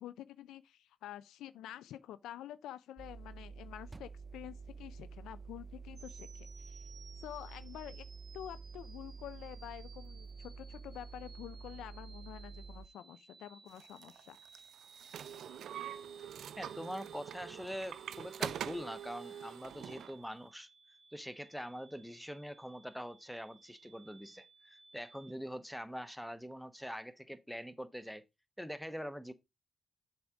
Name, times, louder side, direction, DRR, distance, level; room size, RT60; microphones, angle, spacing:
voice 1, 0.0-6.8 7.2-8.1 8.3-14.4, left 12 dB, 80° left, 0.3 m, -48 dB
sound 1, 3.0-12.9, right 5 dB, 25° right, 0.7 m, -49 dB
sound 2, 5.9-25.3, right 4 dB, 45° right, 0.9 m, -60 dB
sound 3, 13.8-20.1, right 9 dB, 70° right, 0.4 m, -44 dB
voice 2, 16.6-20.7 21.1-28.2 28.6-29.3, equal, ahead, 1.0 m, -44 dB
7.0 x 4.8 x 3.8 m
supercardioid pair, 50°, 0 cm